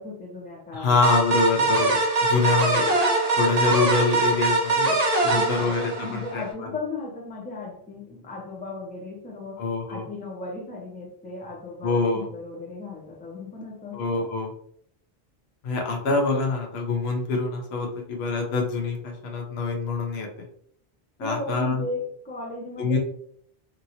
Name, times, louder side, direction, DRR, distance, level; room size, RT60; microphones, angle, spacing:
voice 1, 0.0-1.0 2.6-3.0 5.3-14.3 21.2-23.0, left 3 dB, 10° left, 0 dB, 0.5 m, -36 dB
voice 2, 0.7-2.8 3.4-5.0 5.2-6.4 9.6-10.0 11.8-12.3 13.9-14.5 15.6-20.3 21.2-21.8 22.8-23.0, left 4 dB, 75° left, 1 dB, 1.0 m, -25 dB
sound 1, 1.0-6.4, right 2 dB, 40° right, 0.8 m, -22 dB
2.9 x 2.7 x 2.7 m, 0.63 s
omnidirectional pair, 1.1 m